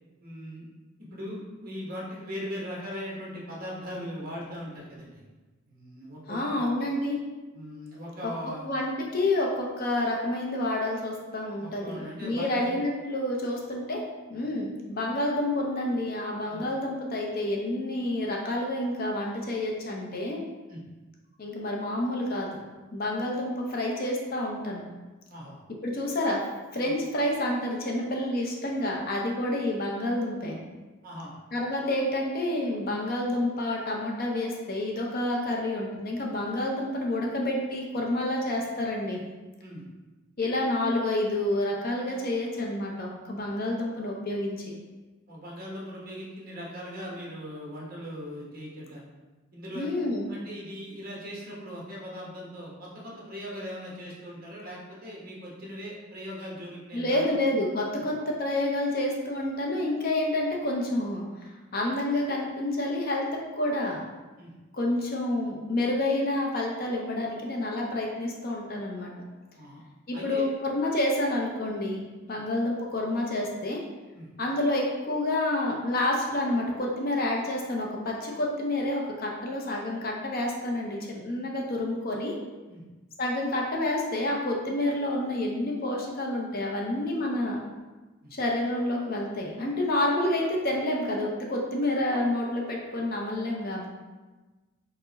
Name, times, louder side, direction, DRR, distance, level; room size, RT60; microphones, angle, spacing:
voice 1, 0.2-0.7 1.1-5.2 5.7-6.7 7.5-8.7 11.6-12.7 14.4-14.5 16.5-16.7 20.7-20.8 25.3-25.6 26.8-26.9 31.0-31.3 39.6-39.8 45.3-49.0 49.5-49.9 50.3-57.5 58.0-58.1 64.4-64.6 69.5-69.8 70.1-70.4 72.3-72.4 74.1-74.3 82.7-82.8 88.2-88.4, equal, 40° right, -4 dB, 0.9 m, -39 dB
voice 2, 6.3-7.2 8.6-14.0 14.3-20.4 21.4-22.6 22.9-24.8 25.8-26.4 26.7-30.6 31.5-39.2 40.4-44.8 49.7-50.3 56.9-61.2 61.7-63.2 63.6-64.0 64.7-69.1 70.1-73.8 74.4-82.4 83.2-87.6 88.3-93.9, left 1 dB, 40° left, -1 dB, 0.5 m, -29 dB
4.4 x 2.1 x 3.9 m, 1.2 s
head